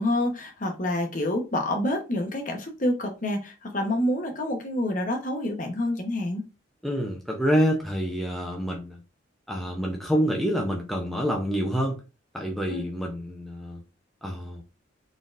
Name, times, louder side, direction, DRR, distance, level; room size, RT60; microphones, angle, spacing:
voice 1, 0.0-6.4 12.7-12.8, left 1 dB, 40° left, 0.9 m, -27 dB
voice 2, 6.8-9.0 9.5-12.0 12.3-13.8 14.2-14.6, equal, ahead, 0.6 m, -27 dB
4.1 x 3.7 x 2.5 m
head